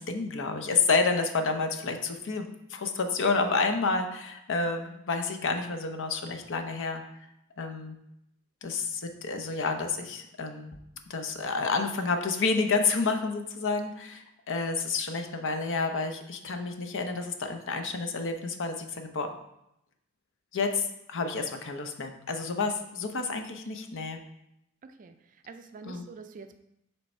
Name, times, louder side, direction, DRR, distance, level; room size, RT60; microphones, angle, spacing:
voice 1, 0.0-7.0 7.6-8.0 8.6-10.7 11.1-19.3 20.5-24.2 25.8-26.0, left 4 dB, 60° left, 6 dB, 0.7 m, -29 dB
voice 2, 24.8-25.1 25.4-26.6, right 4 dB, 35° right, 8 dB, 0.4 m, -46 dB
6.8 x 3.4 x 4.3 m, 0.82 s
head